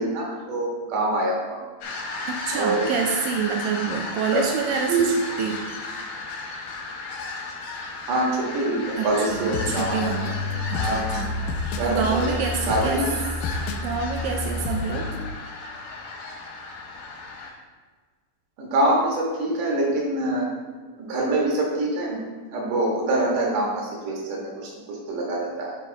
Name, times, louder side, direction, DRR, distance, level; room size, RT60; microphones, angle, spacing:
voice 1, 0.0-1.6 2.5-2.9 4.3-4.4 4.9-5.1 8.1-10.1 10.7-11.1 11.8-12.3 12.7-13.1 18.6-20.5 21.0-22.2 22.5-25.8, right 2 dB, 60° right, -2 dB, 2.9 m, -25 dB
sound 1, 1.8-17.5, left 3 dB, 70° left, 2.8 m, -34 dB
voice 2, 2.3-5.6 9.0-10.4 10.7-11.5 11.8-13.0 13.8-15.1, right 6 dB, 80° right, 2 dB, 2.0 m, -27 dB
sound 2, 9.1-15.3, left 3 dB, 90° left, 1.9 m, -30 dB
7.5 x 6.2 x 3.9 m, 1.5 s
omnidirectional pair, 4.4 m